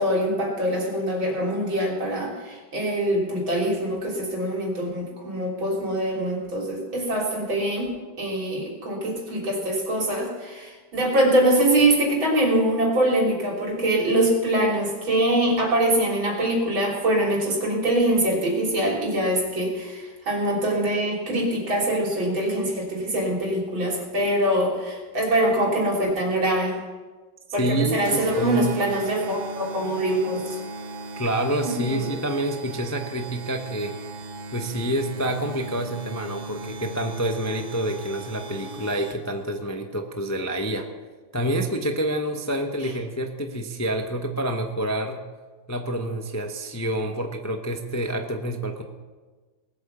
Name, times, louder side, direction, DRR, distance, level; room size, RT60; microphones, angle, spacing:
voice 1, 0.0-7.9 8.2-26.7 27.5-30.6 31.6-32.1, right 1 dB, 80° right, -1 dB, 4.1 m, -24 dB
voice 2, 27.6-28.8 31.2-34.0 34.5-40.9 41.3-45.2 45.7-48.8, right 1 dB, 20° left, 4 dB, 0.5 m, -28 dB
sound 1, 28.0-39.4, right 3 dB, 60° right, 1.4 m, -37 dB
19.0 x 8.6 x 7.1 m, 1.3 s
omnidirectional pair, 2.1 m